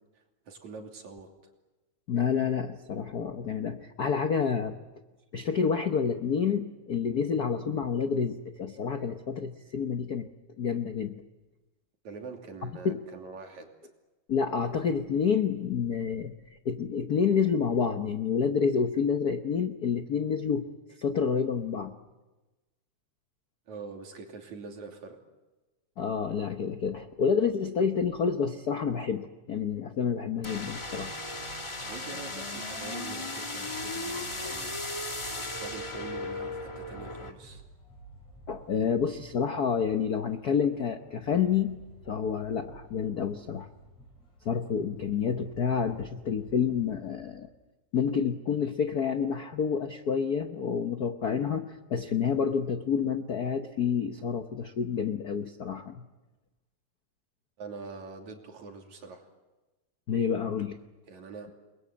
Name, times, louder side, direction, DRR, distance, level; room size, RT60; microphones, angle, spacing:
voice 1, 0.1-1.3 12.0-13.7 23.7-25.2 31.8-34.8 35.2-37.6 57.6-59.3 61.1-61.5, right 4 dB, 75° right, 3 dB, 4.2 m, -44 dB
voice 2, 2.1-4.8 5.3-10.3 10.6-11.1 12.8-13.0 14.3-16.3 16.6-20.7 21.0-21.9 26.0-31.1 38.5-41.8 42.1-43.7 44.4-47.5 47.9-56.0 60.1-60.8, left 6 dB, 85° left, 7 dB, 0.8 m, -28 dB
sound 1, 30.3-47.3, right 2 dB, 60° left, 9.0 m, -53 dB
sound 2, 30.4-37.3, left 2 dB, 20° left, 0.8 m, -36 dB
29.5 x 22.0 x 8.5 m, 1.1 s
omnidirectional pair, 3.3 m